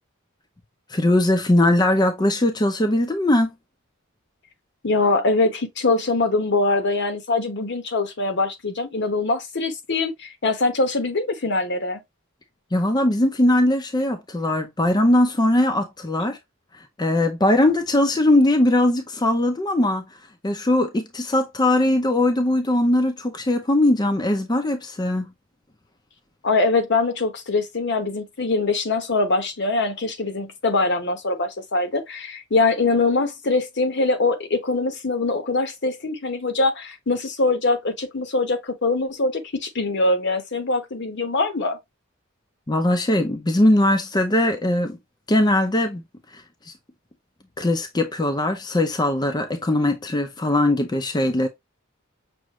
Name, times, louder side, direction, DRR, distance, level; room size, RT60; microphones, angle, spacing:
voice 1, 0.9-3.5 12.7-16.4 17.0-20.1 20.4-25.3 42.7-45.0 45.3-46.0 46.3-46.7 47.6-51.5, left 1 dB, 20° left, 0.5 m, -20 dB
voice 2, 4.8-12.0 26.4-41.8, left 3 dB, 60° left, 1.0 m, -23 dB
6.2 x 2.5 x 3.0 m
head